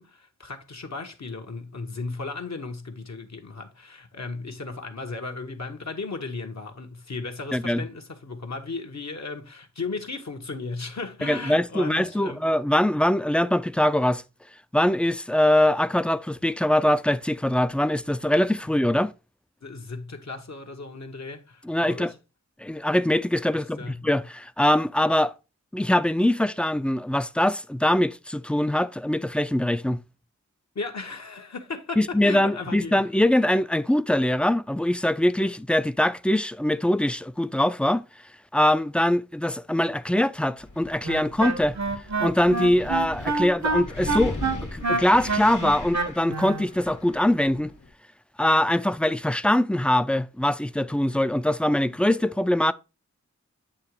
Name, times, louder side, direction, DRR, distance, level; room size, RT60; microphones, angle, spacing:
voice 1, 0.0-12.4 19.6-22.2 23.5-24.1 30.7-33.1, left 3 dB, 60° left, 1.0 m, -36 dB
voice 2, 7.5-7.8 11.2-14.2 14.7-19.1 21.6-22.1 22.6-25.3 25.7-30.0 32.0-38.0 38.5-41.8 42.2-47.7 48.4-52.7, left 1 dB, 5° left, 0.3 m, -23 dB
Wind, 40.6-47.9, left 2 dB, 85° left, 1.5 m, -39 dB
Wind instrument woodwind instrument, 41.0-46.7, right 3 dB, 65° right, 0.8 m, -27 dB
8.6 x 2.9 x 4.6 m
wide cardioid pair, 60°, 30 cm